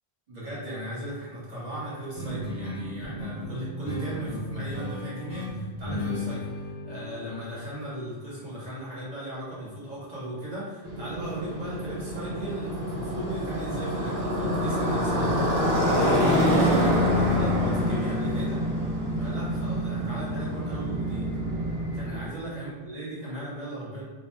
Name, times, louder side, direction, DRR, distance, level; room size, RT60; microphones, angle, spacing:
voice 1, 0.3-6.5 6.9-18.6 19.2-21.3 21.9-24.1, right 1 dB, 45° right, -9 dB, 1.1 m, -37 dB
sound 1, 2.1-8.8, left 1 dB, 65° left, 0.9 m, -35 dB
Motorcycle, 10.8-22.3, equal, 65° right, 0.8 m, -26 dB
2.5 x 2.1 x 3.2 m, 1.4 s
omnidirectional pair, 1.1 m